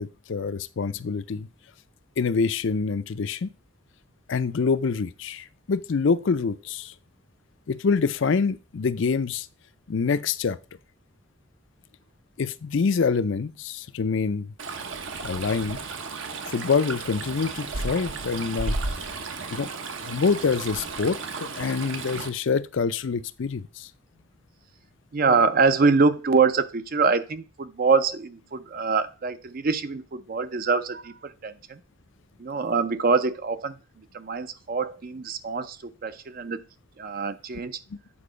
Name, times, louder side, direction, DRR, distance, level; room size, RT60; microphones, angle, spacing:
voice 1, 0.0-1.5 2.2-3.5 4.3-6.9 7.7-9.5 9.9-10.6 12.4-14.5 15.2-15.8 16.5-19.0 19.5-19.7 20.0-23.9, left 5 dB, 60° left, 0.4 m, -26 dB
Stream, 14.6-22.3, right 3 dB, 65° right, 0.9 m, -33 dB
voice 2, 25.1-31.8 32.4-33.8 34.1-36.6 37.0-37.8, right 4 dB, 45° right, 0.5 m, -24 dB
8.6 x 4.5 x 5.0 m
head